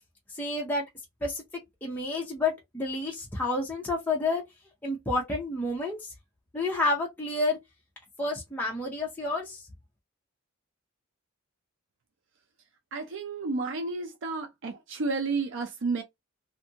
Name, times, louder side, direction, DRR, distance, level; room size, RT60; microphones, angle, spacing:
voice 1, 0.3-0.8 1.2-1.4 1.8-4.4 4.8-6.0 6.5-7.6 8.2-9.6, left 2 dB, 10° left, 0.6 m, -29 dB
voice 2, 12.9-16.0, right 3 dB, 65° right, 0.5 m, -31 dB
2.6 x 2.5 x 2.7 m
head